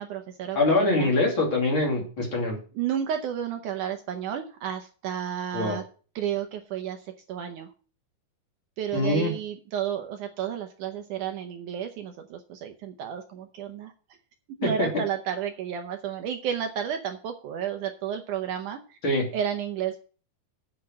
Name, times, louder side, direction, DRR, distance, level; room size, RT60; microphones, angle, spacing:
voice 1, 0.0-1.1 2.7-5.8 6.2-7.7 8.8-13.9 14.6-19.0 19.3-20.0, right 9 dB, 70° right, 5 dB, 2.1 m, -32 dB
voice 2, 0.5-2.6 5.5-5.8 8.9-9.3 14.6-14.9 19.0-19.3, left 2 dB, 40° left, -1 dB, 3.0 m, -24 dB
8.2 x 6.1 x 7.4 m, 0.39 s
omnidirectional pair, 4.1 m